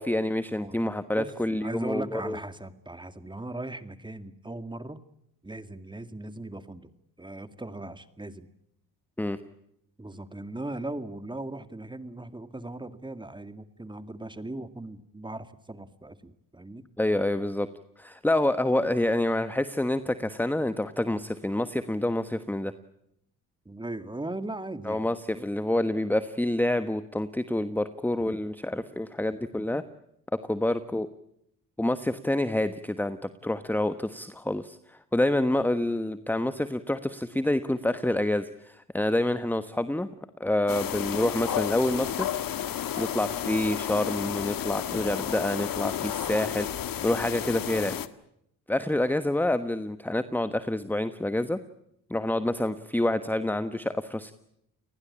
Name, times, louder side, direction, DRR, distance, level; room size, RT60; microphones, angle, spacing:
voice 1, 0.0-2.4 9.2-9.4 17.0-17.7 18.0-22.7 24.8-29.8 30.3-31.1 31.8-40.1 40.4-42.3 43.0-48.0 48.7-51.6 52.1-54.3, left 1 dB, 5° left, 11 dB, 1.2 m, -27 dB
voice 2, 1.2-5.0 5.4-6.9 7.2-8.5 10.0-16.8 23.7-25.1 25.3-25.5, right 2 dB, 10° right, 10 dB, 2.2 m, -38 dB
sound 1, 40.7-48.1, left 10 dB, 60° left, 1.7 m, -32 dB
29.5 x 19.5 x 8.7 m, 0.78 s
cardioid pair, 85°, 38 cm